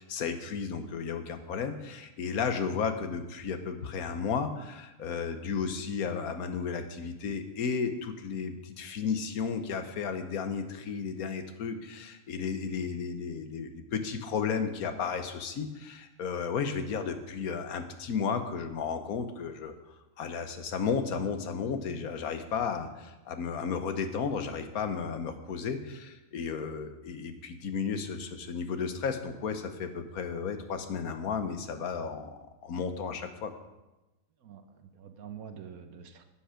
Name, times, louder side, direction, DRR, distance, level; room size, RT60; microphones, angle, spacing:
voice 1, 0.0-19.7 20.2-33.5, left 6 dB, 85° left, 8 dB, 1.4 m, -33 dB
voice 2, 34.4-36.2, right 8 dB, 80° right, 8 dB, 1.4 m, -46 dB
11.5 x 8.6 x 4.9 m, 1.0 s
omnidirectional pair, 1.5 m